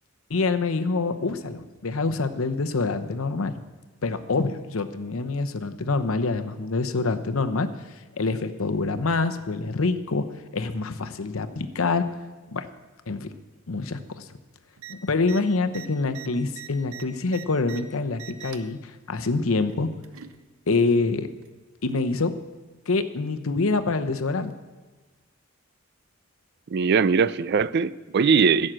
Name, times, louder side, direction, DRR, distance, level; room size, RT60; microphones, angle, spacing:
voice 1, 0.3-3.6 4.0-7.7 8.2-10.2 10.5-12.0 12.5-12.7 13.1-13.3 13.7-14.2 14.9-18.8 19.1-19.9 20.7-21.3 21.8-22.3 22.9-24.5, left 3 dB, 75° left, 10 dB, 0.8 m, -26 dB
sound 1, 14.8-14.9 15.2-15.4 15.7-17.8 18.1-18.7 19.7-20.4 21.4-21.5, right 10 dB, 80° right, 0.7 m, -42 dB
voice 2, 26.7-28.7, right 5 dB, 50° right, 17 dB, 0.4 m, -21 dB
15.5 x 6.4 x 7.6 m, 1.3 s
head